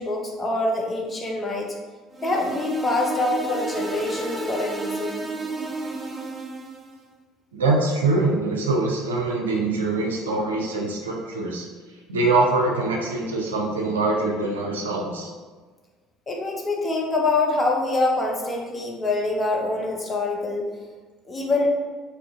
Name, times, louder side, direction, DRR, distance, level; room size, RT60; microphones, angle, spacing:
voice 1, 0.0-1.8 2.2-5.3 16.3-20.7 21.3-21.7, left 2 dB, 25° left, 0 dB, 0.7 m, -25 dB
sound 1, 2.1-6.9, right 2 dB, 20° right, 0.4 m, -31 dB
voice 2, 7.6-11.7 12.1-15.3, right 3 dB, 80° right, 0 dB, 0.5 m, -23 dB
2.8 x 2.4 x 3.6 m, 1.4 s
figure-of-eight pair, 60°, 0 cm